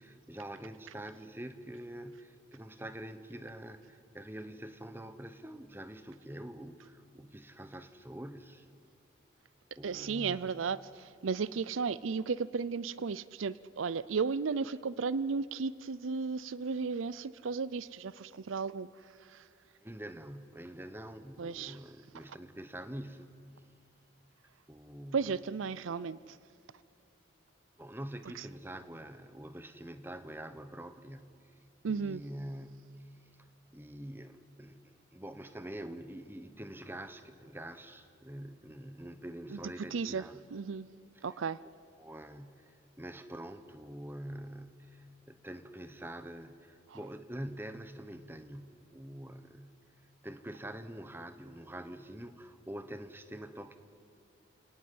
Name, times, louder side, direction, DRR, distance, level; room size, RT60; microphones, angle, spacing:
voice 1, 0.0-8.7 9.8-10.5 19.8-23.3 24.7-25.4 27.8-31.3 31.9-33.0 33.7-40.4 41.1-41.4 42.0-49.7 50.2-53.8, right 1 dB, 10° right, 10 dB, 1.1 m, -45 dB
voice 2, 9.8-18.9 19.3-19.4 21.4-21.8 25.1-26.2 28.4-28.5 31.8-32.2 39.5-39.6 39.9-40.2 40.5-40.9 41.2-41.6, right 5 dB, 85° right, 18 dB, 0.5 m, -34 dB
29.0 x 18.0 x 9.4 m, 2.7 s
head